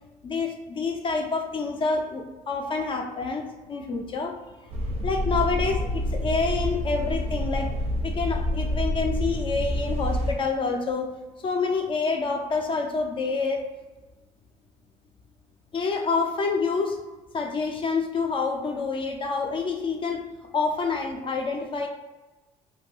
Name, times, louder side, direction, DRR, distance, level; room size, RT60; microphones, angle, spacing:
voice 1, 0.2-4.3 5.0-7.7 8.0-11.1 11.4-13.6 15.7-17.0 17.3-20.2 20.5-21.9, left 4 dB, 35° left, 3 dB, 0.4 m, -27 dB
sound 1, 4.7-10.3, equal, 45° right, 0.5 m, -27 dB
2.6 x 2.2 x 3.2 m, 1.1 s
cardioid pair, 120°, 15 cm